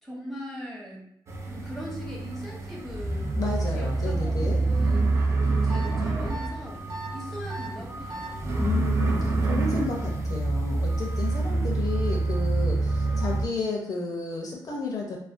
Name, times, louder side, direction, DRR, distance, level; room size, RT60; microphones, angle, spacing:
voice 1, 0.0-1.0 1.5-6.8 7.1-8.3, equal, ahead, -3 dB, 0.7 m, -40 dB
sound 1, 1.3-13.5, right 2 dB, 35° right, 0.4 m, -27 dB
voice 2, 3.3-4.6 8.6-15.2, left 3 dB, 50° left, -1 dB, 0.4 m, -32 dB
sound 2, 5.7-5.9 6.3-6.5 6.9-7.1 7.5-7.7 8.1-8.3, right 2 dB, 65° right, 0.9 m, -37 dB
2.4 x 2.1 x 2.4 m, 0.72 s
cardioid pair, 110°, 8 cm